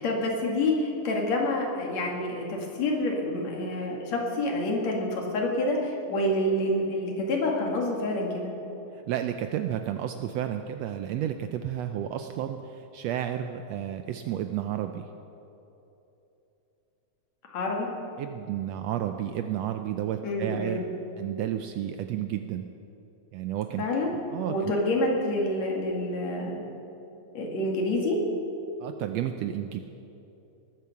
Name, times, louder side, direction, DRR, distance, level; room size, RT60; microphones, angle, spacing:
voice 1, 0.0-8.5 17.4-17.9 20.2-20.9 23.8-24.1 24.5-26.6 27.3-28.2, left 1 dB, 65° left, 0 dB, 3.3 m, -27 dB
voice 2, 8.9-15.1 18.2-20.8 21.2-22.7 23.3-23.8 24.3-24.7 28.8-29.8, right 11 dB, 80° right, 7 dB, 1.5 m, -31 dB
19.0 x 9.3 x 7.1 m, 3.0 s
omnidirectional pair, 3.5 m